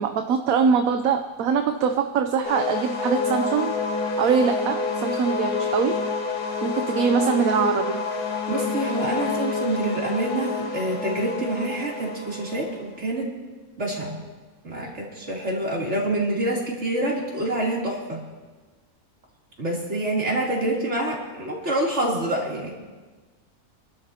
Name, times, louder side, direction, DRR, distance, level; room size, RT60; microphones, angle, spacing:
voice 1, 0.0-3.7 4.2-6.0 6.6-8.0, right 6 dB, 70° right, 6 dB, 1.1 m, -23 dB
sound 1, 2.4-12.8, left 4 dB, 80° left, 2.1 m, -28 dB
voice 2, 8.5-13.3 13.8-14.2 14.6-18.2 19.6-22.8, right 1 dB, 50° right, -4 dB, 3.6 m, -27 dB
27.0 x 12.5 x 2.9 m, 1.3 s
omnidirectional pair, 1.6 m